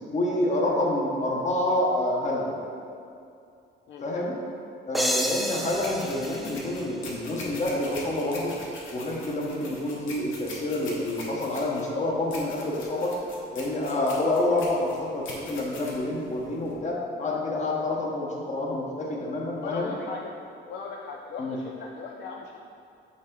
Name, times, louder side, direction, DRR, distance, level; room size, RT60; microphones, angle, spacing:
voice 1, 0.1-2.6 4.0-4.3 4.8-8.5 8.9-13.1 13.5-19.9 21.4-21.6, left 1 dB, 35° left, -2 dB, 1.2 m, -28 dB
sound 1, 4.9-7.6, equal, ahead, 0.4 m, -31 dB
sound 2, 5.6-16.8, left 2 dB, 80° left, 1.1 m, -42 dB
voice 2, 19.6-20.3 20.7-22.5, left 4 dB, 65° left, 0 dB, 0.5 m, -38 dB
6.4 x 4.4 x 3.7 m, 2.5 s
cardioid pair, 90°, 20 cm